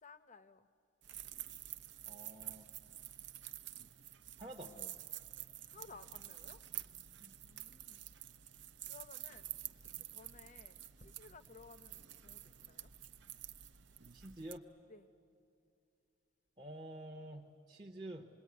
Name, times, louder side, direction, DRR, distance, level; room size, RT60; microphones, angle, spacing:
voice 1, 0.0-0.7 5.7-6.6 7.4-8.1 8.9-9.5 9.8-12.9 14.9-15.1, left 4 dB, 35° left, 12 dB, 0.7 m, -58 dB
sound 1, 1.0-14.6, right 12 dB, 55° right, 0.6 m, -49 dB
voice 2, 2.1-2.7 4.4-5.0 7.2-7.3 14.1-14.6 16.6-18.3, right 1 dB, 20° right, -1 dB, 0.9 m, -49 dB
26.5 x 21.0 x 9.4 m, 2.5 s
head